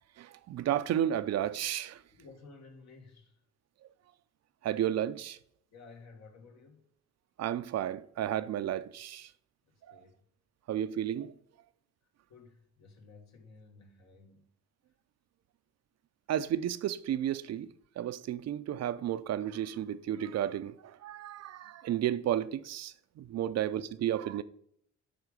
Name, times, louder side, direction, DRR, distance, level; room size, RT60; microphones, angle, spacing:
voice 1, 0.2-2.0 4.6-5.4 7.4-9.3 9.9-10.0 10.7-11.3 16.3-17.7 18.0-24.4, right 11 dB, 60° right, 0.6 m, -32 dB
voice 2, 2.1-3.4 5.7-6.9 9.9-10.2 12.3-14.5 23.5-23.6, left 4 dB, 65° left, 1.9 m, -54 dB
11.0 x 3.8 x 5.2 m
cardioid pair, 90°, 30 cm